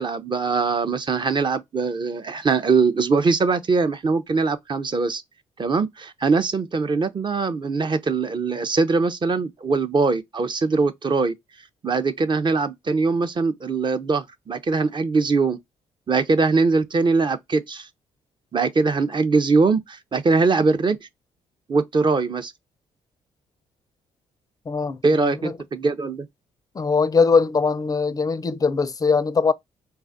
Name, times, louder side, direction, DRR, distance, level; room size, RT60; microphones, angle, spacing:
voice 1, 0.0-5.2 5.6-11.3 11.8-15.6 16.1-17.9 18.5-21.0 21.7-22.5 25.0-26.3, right 4 dB, 30° right, 0.5 m, -22 dB
voice 2, 24.7-25.5 26.8-29.5, left 5 dB, 25° left, 0.4 m, -21 dB
3.2 x 2.3 x 2.4 m
hypercardioid pair, 50°, 15 cm